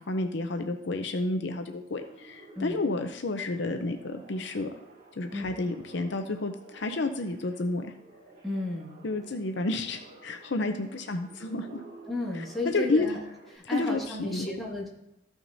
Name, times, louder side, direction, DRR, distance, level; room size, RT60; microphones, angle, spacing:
voice 1, 0.0-4.7 5.2-7.9 9.0-11.8 12.3-12.4 12.7-13.1 13.6-14.5, left 2 dB, 60° left, 6 dB, 0.6 m, -30 dB
sound 1, 2.0-13.6, right 3 dB, 40° right, 1.6 m, -52 dB
voice 2, 8.4-9.0 12.1-13.2 13.6-14.9, left 2 dB, ahead, -5 dB, 1.9 m, -33 dB
14.0 x 6.1 x 2.7 m, 0.89 s
head